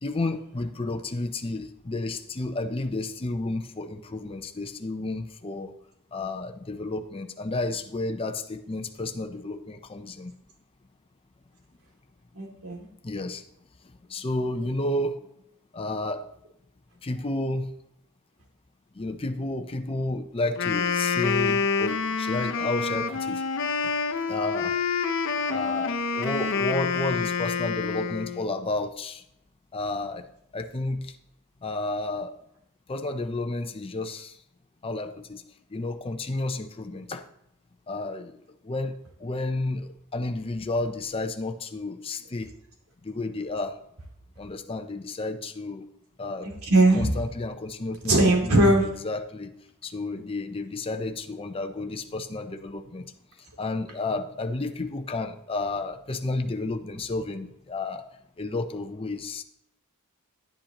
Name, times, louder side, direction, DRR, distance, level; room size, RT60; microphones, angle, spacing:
voice 1, 0.0-5.7 6.1-10.3 13.0-13.4 13.8-15.3 15.7-16.2 17.0-17.7 18.9-23.4 23.8-24.0 24.3-24.8 25.5-29.2 29.7-30.2 30.5-31.2 31.6-32.3 32.9-34.4 34.8-35.4 35.7-37.3 37.9-42.5 43.0-43.8 44.4-45.9 46.2-46.5 46.9-49.5 49.8-53.1 53.6-58.0 58.4-59.4, left 2 dB, 25° left, 6 dB, 0.6 m, -31 dB
voice 2, 12.3-12.9 46.4-47.2 48.1-48.9, right 2 dB, 75° right, -1 dB, 2.5 m, -20 dB
Wind instrument woodwind instrument, 20.5-28.5, left 5 dB, 60° left, 0.7 m, -27 dB
10.5 x 10.0 x 2.9 m, 0.76 s
head